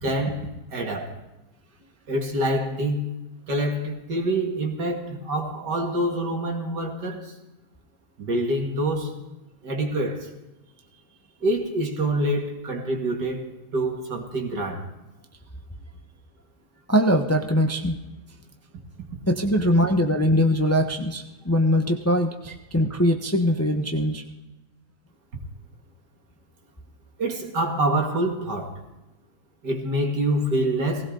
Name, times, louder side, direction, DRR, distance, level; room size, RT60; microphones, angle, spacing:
voice 1, 0.0-1.2 2.1-3.2 3.5-7.3 8.2-9.1 9.6-10.3 11.4-13.5 13.7-14.9 27.2-28.8 29.6-31.1, right 1 dB, 85° right, 2.7 m, -26 dB
voice 2, 16.9-18.0 19.3-24.2, equal, 15° left, 0.7 m, -22 dB
18.5 x 16.5 x 3.9 m
omnidirectional pair, 1.8 m